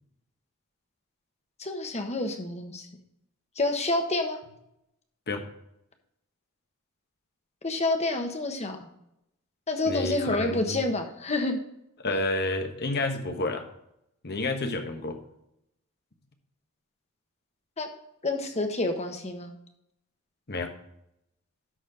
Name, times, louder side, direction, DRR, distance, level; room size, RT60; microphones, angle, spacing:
voice 1, 1.6-2.9 3.6-4.4 7.6-8.9 9.7-11.6 17.8-17.9 18.2-19.5, left 2 dB, 30° left, 5 dB, 1.3 m, -28 dB
voice 2, 9.9-10.9 12.0-13.6 14.2-15.2 20.5-20.7, left 2 dB, 50° left, 6 dB, 1.3 m, -30 dB
12.5 x 4.3 x 4.9 m, 0.81 s
head